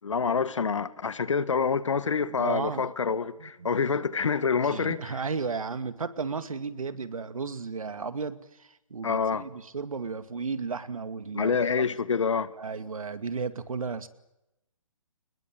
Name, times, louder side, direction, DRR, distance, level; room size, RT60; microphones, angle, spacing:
voice 1, 0.0-5.0 9.0-9.4 11.3-12.5, left 5 dB, 65° left, 1.7 m, -27 dB
voice 2, 2.4-2.9 3.4-3.7 4.6-11.8 12.6-14.1, right 5 dB, 80° right, 2.3 m, -34 dB
24.5 x 21.5 x 9.1 m
hypercardioid pair, 175°, 17 cm